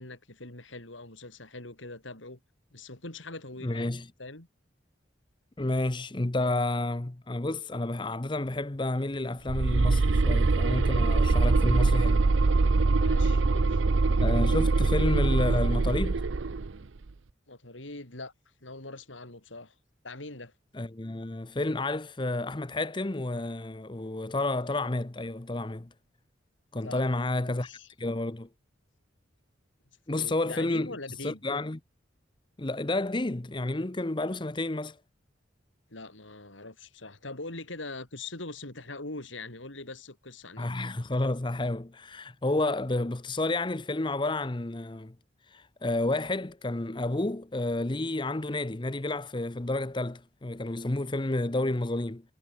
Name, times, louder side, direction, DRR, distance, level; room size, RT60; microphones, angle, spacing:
voice 1, 0.0-2.4 2.7-4.5 12.9-13.9 17.5-18.3 18.6-19.7 20.0-20.5 26.8-27.9 30.2-31.4 35.9-40.7, left 2 dB, 90° left, 4.9 m, -42 dB
voice 2, 3.6-4.1 5.6-12.3 14.2-16.2 20.7-25.9 26.7-27.7 28.0-28.5 30.1-30.9 31.2-31.8 32.6-35.0 40.6-45.1 45.5-52.2, left 2 dB, 25° left, 0.8 m, -30 dB
sound 1, 9.5-16.7, right 3 dB, 85° right, 0.7 m, -23 dB
head